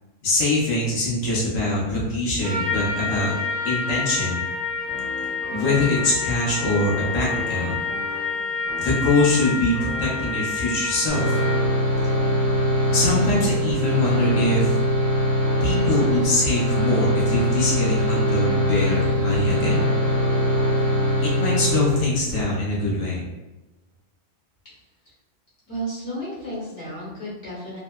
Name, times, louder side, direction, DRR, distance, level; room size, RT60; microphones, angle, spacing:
voice 1, 0.2-3.3 3.6-4.4 5.5-7.8 8.8-11.4 12.9-14.7 15.6-19.9 21.2-23.3, left 2 dB, 85° left, -6 dB, 1.2 m, -23 dB
Trumpet, 2.4-11.8, left 4 dB, 80° right, 1.0 m, -28 dB
sound 1, 4.9-6.4 6.8-10.7 11.1-15.0 15.4-19.4 19.7-21.6, left 2 dB, 45° left, 1.0 m, -38 dB
sound 2, 11.1-22.4, equal, 45° right, 0.8 m, -22 dB
voice 2, 25.7-27.8, right 1 dB, 60° left, -7 dB, 1.5 m, -33 dB
3.1 x 2.0 x 2.2 m, 1.1 s
omnidirectional pair, 1.3 m